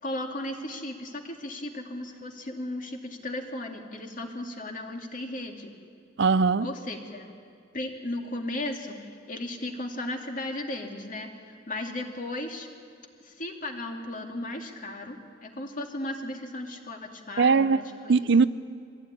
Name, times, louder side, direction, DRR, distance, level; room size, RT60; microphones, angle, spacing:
voice 1, 0.0-5.7 6.6-7.3 7.7-12.7 13.2-18.2, left 1 dB, 45° left, 3 dB, 2.3 m, -36 dB
voice 2, 6.2-6.7 17.4-17.8 18.1-18.4, right 4 dB, 65° right, 15 dB, 0.6 m, -20 dB
23.0 x 15.5 x 9.8 m, 2.3 s
head